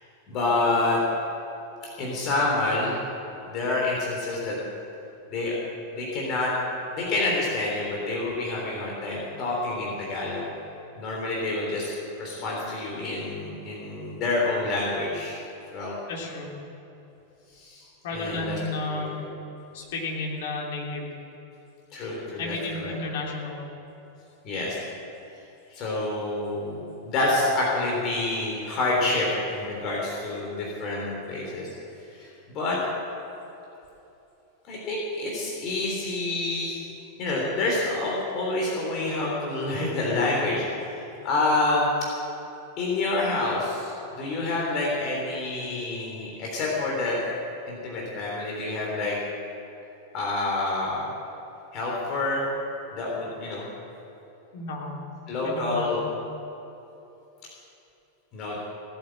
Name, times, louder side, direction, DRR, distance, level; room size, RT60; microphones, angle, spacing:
voice 1, 0.3-1.0 1.8-3.0 3.4-4.6 5.3-5.5 5.9-6.5 6.9-10.5 10.9-11.9 12.2-15.4 15.7-16.0 17.5-17.8 18.1-18.6 18.9-19.3 21.9-22.9 24.4-24.8 25.7-31.7 32.1-32.8 34.7-36.8 37.2-40.7 41.2-41.9 42.8-47.2 47.7-49.2 50.1-51.0 51.7-52.4 52.9-53.6 55.3-56.0 58.3-58.6, left 2 dB, 35° left, -3 dB, 3.5 m, -28 dB
voice 2, 16.1-16.5 18.0-19.2 19.7-21.1 22.4-23.6 54.5-55.0 55.4-56.0, left 2 dB, 55° left, -2 dB, 3.4 m, -32 dB
17.5 x 9.0 x 7.6 m, 2.9 s
figure-of-eight pair, 90°, 0 cm